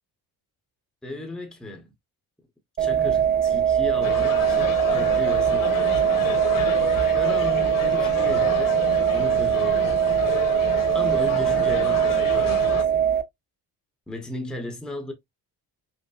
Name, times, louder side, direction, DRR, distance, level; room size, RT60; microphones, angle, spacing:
voice 1, 1.0-1.9 2.8-6.2 7.1-8.8 9.1-10.2 10.9-13.0 14.1-15.1, left 1 dB, ahead, 0.7 m, -35 dB
sound 1, 2.8-13.2, right 9 dB, 25° right, 0.4 m, -22 dB
sound 2, 4.0-12.8, left 6 dB, 55° left, 1.0 m, -31 dB
5.2 x 2.1 x 2.3 m
cardioid pair, 130°, 39 cm